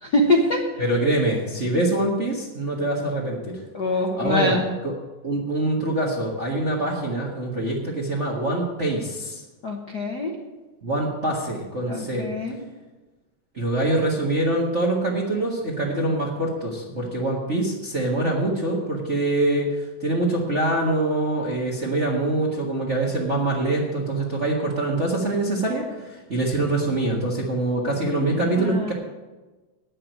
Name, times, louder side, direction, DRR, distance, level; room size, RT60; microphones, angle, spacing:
voice 1, 0.0-0.6 3.7-4.7 9.6-10.3 11.9-12.6 28.2-28.9, left 2 dB, 55° left, -1 dB, 1.2 m, -24 dB
voice 2, 0.8-3.6 4.2-4.9 5.2-9.4 10.8-12.3 13.5-19.7 20.0-28.9, right 2 dB, 35° right, -3 dB, 1.2 m, -24 dB
9.8 x 7.6 x 9.0 m, 1.2 s
omnidirectional pair, 3.5 m